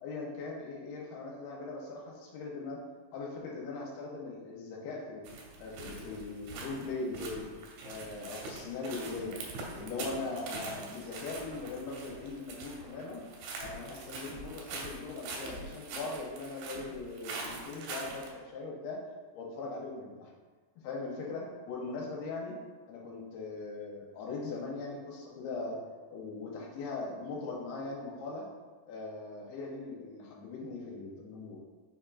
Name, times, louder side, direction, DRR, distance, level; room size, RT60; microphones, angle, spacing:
voice 1, 0.0-2.8 3.1-5.3 5.6-7.5 7.8-9.4 9.7-13.2 13.6-19.0 19.3-20.3 20.8-22.6 22.9-25.8 26.1-28.5 28.9-31.6, left 3 dB, 90° left, -2 dB, 2.6 m, -40 dB
sound 1, 5.2-18.3, right 3 dB, 85° right, 2.5 m, -43 dB
5.9 x 2.3 x 3.7 m, 1.4 s
omnidirectional pair, 4.5 m